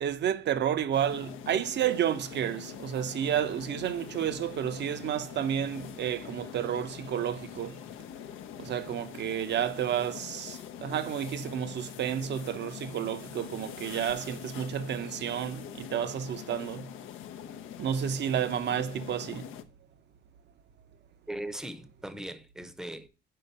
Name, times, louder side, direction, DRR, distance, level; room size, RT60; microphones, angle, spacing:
voice 1, 0.0-7.8 8.6-16.9 17.8-19.5, right 9 dB, 60° right, 0.7 m, -31 dB
sound 1, 0.9-19.6, left 10 dB, 90° left, 0.6 m, -44 dB
voice 2, 21.3-23.1, right 1 dB, 5° right, 0.6 m, -39 dB
5.6 x 4.8 x 5.3 m
cardioid pair, 90°, 20 cm